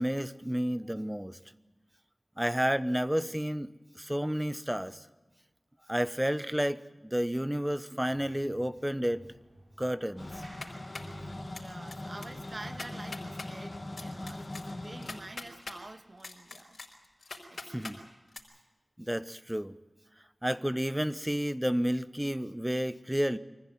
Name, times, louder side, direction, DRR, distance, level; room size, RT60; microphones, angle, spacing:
voice 1, 0.0-1.4 2.4-3.7 4.0-5.0 5.9-9.2 9.8-10.3 17.7-18.0 19.0-19.8 20.4-23.4, equal, 10° right, 1.0 m, -31 dB
sound 1, 8.1-14.5, right 1 dB, 80° right, 4.7 m, -54 dB
sound 2, 10.2-15.2, left 2 dB, 50° left, 2.3 m, -41 dB
sound 3, 10.4-11.2 11.5-12.0 12.2-12.3 12.7-13.5 14.0-15.8 16.2-18.0 18.3-18.4, left 3 dB, 75° left, 4.7 m, -43 dB
voice 2, 11.4-16.8 17.2-18.1, right 2 dB, 55° right, 2.0 m, -48 dB
24.5 x 15.5 x 9.4 m
wide cardioid pair, 45°, 0 cm